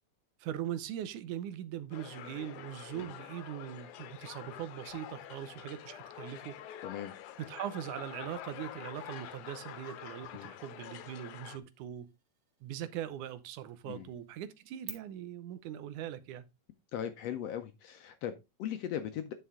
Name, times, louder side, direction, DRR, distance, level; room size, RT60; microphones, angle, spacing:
voice 1, 0.4-6.6 7.4-12.1 12.6-16.5, right 11 dB, 85° right, 2.3 m, -41 dB
sound 1, 1.9-11.6, left 11 dB, 90° left, 2.2 m, -47 dB
sound 2, 4.9-14.9, right 7 dB, 50° right, 1.7 m, -58 dB
voice 2, 6.8-7.1 10.3-10.5 13.9-14.1 16.9-19.3, left 10 dB, 75° left, 1.6 m, -39 dB
9.7 x 5.6 x 3.5 m
omnidirectional pair, 3.5 m